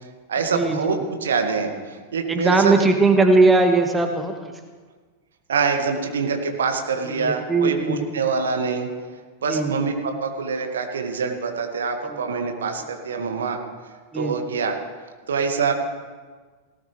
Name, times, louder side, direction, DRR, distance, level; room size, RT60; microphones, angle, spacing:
voice 1, 0.3-2.8 5.5-8.9 9.4-13.6 14.1-14.8 15.3-15.7, right 5 dB, 65° right, 4 dB, 1.9 m, -25 dB
voice 2, 2.3-4.3 7.2-8.0 9.5-9.7 14.1-14.3, right 3 dB, 10° right, 5 dB, 1.6 m, -19 dB
18.0 x 17.5 x 3.4 m, 1.4 s
figure-of-eight pair, 90°, 0 cm